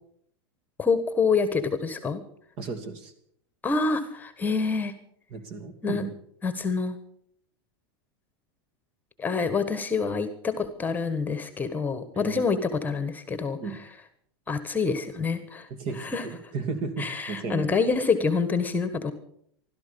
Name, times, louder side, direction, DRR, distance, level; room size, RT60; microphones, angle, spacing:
voice 1, 0.8-2.2 3.6-4.9 5.8-6.1 6.4-7.0 9.2-13.8 14.5-15.7 16.0-16.3 17.0-19.1, left 4 dB, 15° left, 11 dB, 1.4 m, -27 dB
voice 2, 2.6-3.1 5.3-6.1 12.1-12.4 13.6-13.8 15.7-17.8, right 4 dB, 45° right, 9 dB, 2.8 m, -34 dB
16.0 x 12.5 x 7.0 m, 0.66 s
supercardioid pair, 140°, 13 cm